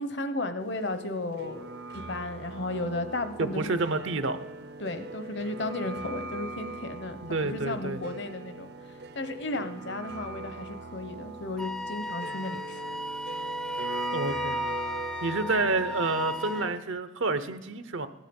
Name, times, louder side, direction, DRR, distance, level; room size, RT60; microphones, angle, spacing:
voice 1, 0.0-1.7 2.1-3.8 4.8-13.1, left 2 dB, 65° left, 10 dB, 0.9 m, -34 dB
sound 1, 0.6-16.8, right 2 dB, 55° right, 0.5 m, -40 dB
voice 2, 3.4-4.4 7.2-8.0 14.1-14.6 15.2-18.1, right 3 dB, 90° right, 11 dB, 0.8 m, -29 dB
Wind instrument woodwind instrument, 11.6-16.7, left 1 dB, 5° left, 0.3 m, -35 dB
17.0 x 11.0 x 5.4 m, 1.2 s
head